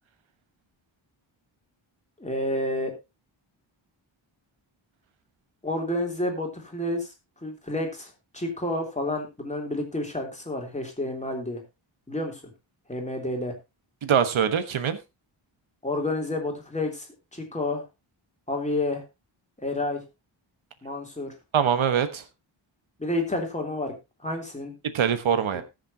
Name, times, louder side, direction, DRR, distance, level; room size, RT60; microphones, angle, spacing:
voice 1, 2.2-2.9 5.6-7.1 7.4-11.6 12.1-12.4 12.9-13.5 15.8-17.1 17.3-17.8 18.5-19.0 19.6-20.0 20.8-21.3 23.0-23.9 24.2-24.7 25.5-25.6, left 1 dB, 15° left, 3.2 m, -29 dB
voice 2, 14.0-15.0 21.5-22.2 24.8-25.6, right 8 dB, 85° right, 1.3 m, -23 dB
19.5 x 6.7 x 2.8 m
wide cardioid pair, 130°, 47 cm